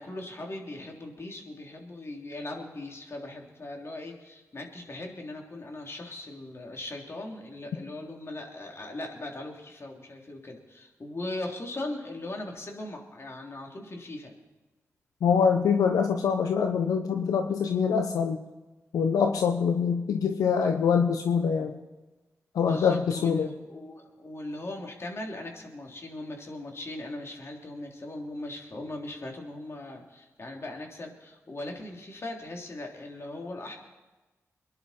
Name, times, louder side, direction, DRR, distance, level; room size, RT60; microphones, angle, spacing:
voice 1, 0.0-14.3 22.6-33.8, left 2 dB, 45° left, 1 dB, 3.4 m, -39 dB
voice 2, 15.2-18.4 18.9-21.8 22.5-23.5, left 6 dB, 90° left, 5 dB, 0.8 m, -24 dB
23.0 x 11.0 x 4.4 m, 1.1 s
cardioid pair, 50°, 6 cm